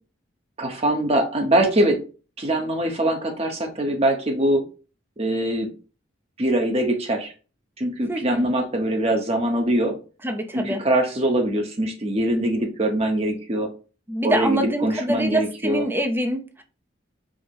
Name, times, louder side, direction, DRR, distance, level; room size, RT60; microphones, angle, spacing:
voice 1, 0.6-2.0 2.4-4.6 5.2-5.7 6.4-7.3 7.8-9.9 10.5-13.7 14.2-15.8, right 1 dB, 30° right, 0.9 m, -23 dB
voice 2, 8.1-8.4 10.2-10.8 14.1-16.6, right 1 dB, 10° right, 0.5 m, -25 dB
4.7 x 2.2 x 4.4 m
head